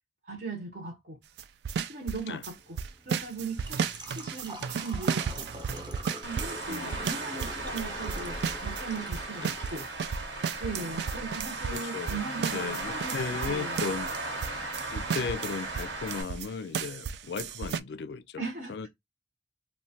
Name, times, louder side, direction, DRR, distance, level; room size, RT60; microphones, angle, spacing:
voice 1, 0.2-1.2 1.8-2.8 3.1-5.5 6.2-9.9 10.6-13.2 13.4-13.8 15.2-15.3 18.4-18.7, right 4 dB, 55° right, 0.8 m, -38 dB
sound 1, 1.4-2.5 2.8-8.8 9.1-16.5 16.7-17.8, right 7 dB, 70° right, 0.3 m, -33 dB
Engine / Trickle dribble / Fill (with liquid), 2.5-14.5, right 1 dB, 25° right, 0.7 m, -47 dB
Traffic noise roadway noise, 6.2-16.2, right 2 dB, 85° right, 1.3 m, -37 dB
voice 2, 6.7-7.1 9.4-9.6 10.6-11.1 11.7-14.1 14.9-18.4 18.7-18.9, left 5 dB, 75° left, 0.4 m, -36 dB
3.1 x 2.2 x 2.7 m
head